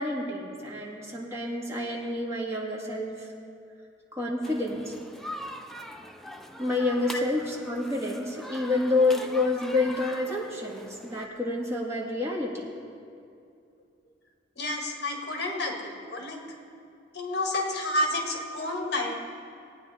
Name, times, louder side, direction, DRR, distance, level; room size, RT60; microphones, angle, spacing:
voice 1, 0.0-3.3 4.1-4.9 6.6-12.7, left 2 dB, 15° right, -3 dB, 1.8 m, -28 dB
sound 1, 4.4-11.3, left 1 dB, ahead, 0.4 m, -42 dB
voice 2, 14.6-16.4 17.1-19.1, left 1 dB, 60° left, 2 dB, 1.5 m, -30 dB
18.5 x 9.1 x 4.1 m, 2.5 s
head